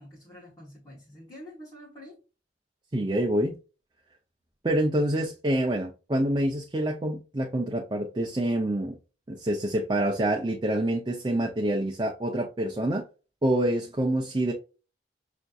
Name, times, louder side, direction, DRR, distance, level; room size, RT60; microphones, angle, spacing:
voice 1, 0.0-2.2, equal, 15° left, 1.1 m, -47 dB
voice 2, 2.9-3.6 4.6-9.0 9.3-13.0 13.4-14.5, right 1 dB, 25° right, 0.5 m, -26 dB
5.8 x 2.6 x 2.3 m
head